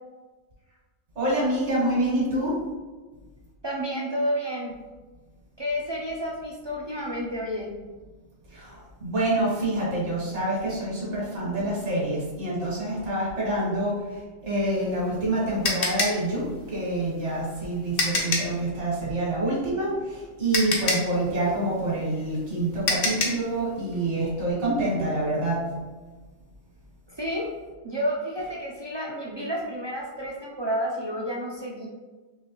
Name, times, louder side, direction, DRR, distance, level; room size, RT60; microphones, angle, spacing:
voice 1, 1.2-2.6 8.5-13.9 14.4-25.6, right 1 dB, 75° right, -6 dB, 1.8 m, -27 dB
voice 2, 3.6-4.8 5.6-7.7 27.2-27.5 27.8-31.9, equal, 35° right, -3 dB, 0.4 m, -30 dB
sound 1, 14.7-18.6 20.0-20.1 20.5-23.5, left 2 dB, 55° left, 0.9 m, -27 dB
4.7 x 3.1 x 3.0 m, 1.3 s
omnidirectional pair, 1.2 m